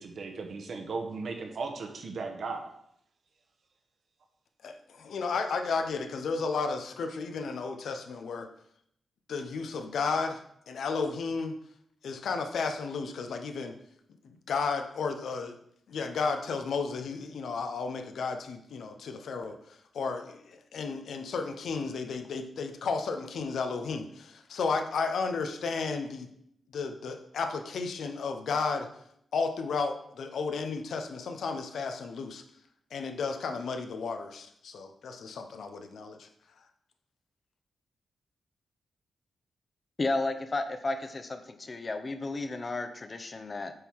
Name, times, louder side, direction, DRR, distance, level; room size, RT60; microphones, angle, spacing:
voice 1, 0.0-2.7, right 4 dB, 60° right, 4 dB, 1.1 m, -36 dB
voice 2, 4.6-8.5 9.3-11.5 12.0-13.8 14.2-15.6 15.9-26.3 26.7-28.9 29.3-32.4 32.9-36.3, left 4 dB, 75° left, 6 dB, 0.7 m, -33 dB
voice 3, 40.0-43.7, left 2 dB, 35° left, 9 dB, 0.7 m, -33 dB
7.8 x 3.7 x 4.6 m, 0.72 s
cardioid pair, 90°, 0 cm